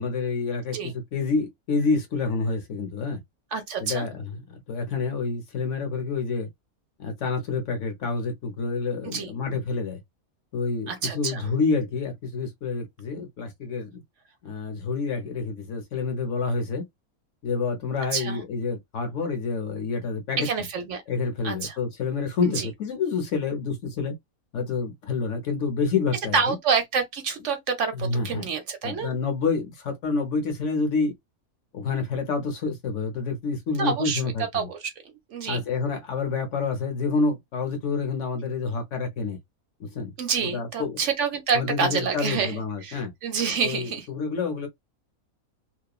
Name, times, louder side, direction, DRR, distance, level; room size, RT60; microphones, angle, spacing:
voice 1, 0.0-3.2 3.8-4.3 4.7-6.5 7.0-10.0 10.5-14.0 14.4-16.9 17.4-20.5 21.1-24.1 24.5-26.6 27.9-28.5 28.8-31.1 31.7-34.7 35.5-39.4 39.8-40.1 40.5-41.0 41.5-43.1 43.6-44.7, left 4 dB, 60° left, 1.0 m, -28 dB
voice 2, 3.5-4.1 9.0-9.3 10.9-11.5 18.1-18.4 20.4-21.0 21.4-21.8 22.5-22.7 26.3-29.1 33.8-34.2 34.5-34.9 35.3-35.6 40.2-44.1, right 5 dB, 65° right, 0.9 m, -27 dB
2.9 x 2.1 x 2.3 m
omnidirectional pair, 1.5 m